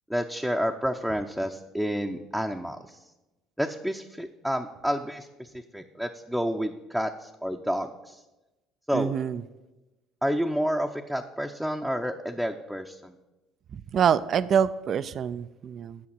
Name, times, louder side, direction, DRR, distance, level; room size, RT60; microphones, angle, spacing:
voice 1, 0.1-3.0 3.6-8.2 8.9-9.1 10.2-13.2, equal, ahead, 2 dB, 0.6 m, -30 dB
voice 2, 8.9-9.4 13.7-16.0, right 8 dB, 50° right, 15 dB, 0.3 m, -26 dB
8.6 x 5.7 x 7.2 m, 1.1 s
supercardioid pair, 75°, 0 cm